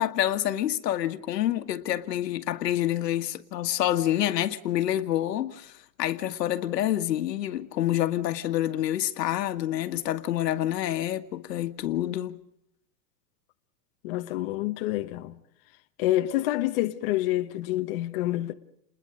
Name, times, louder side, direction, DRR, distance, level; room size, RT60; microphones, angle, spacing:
voice 1, 0.0-12.4, left 12 dB, 75° left, 1.9 m, -27 dB
voice 2, 14.0-15.4 16.0-18.5, left 15 dB, 35° left, 1.2 m, -27 dB
29.5 x 21.0 x 5.0 m
supercardioid pair, 175°, 49 cm